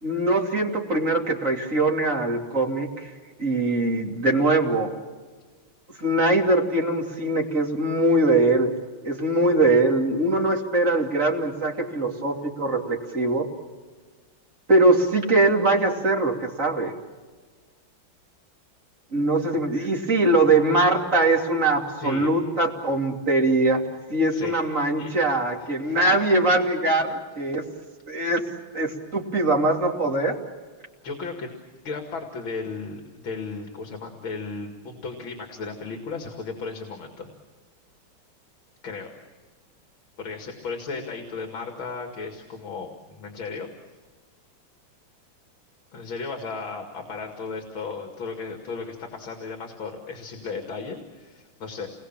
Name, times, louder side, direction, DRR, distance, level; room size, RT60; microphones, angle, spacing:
voice 1, 0.0-3.1 3.4-5.0 6.0-8.7 9.0-13.5 14.7-16.9 19.1-23.8 24.1-27.7 28.1-28.5 28.7-30.4, right 2 dB, 35° right, 0 dB, 3.2 m, -22 dB
voice 2, 22.0-22.3 24.3-25.1 25.6-26.0 31.0-31.5 31.8-37.3 38.8-39.1 40.2-43.7 45.9-51.9, left 4 dB, 70° left, 3 dB, 2.9 m, -35 dB
29.0 x 21.5 x 7.4 m, 1.4 s
omnidirectional pair, 2.3 m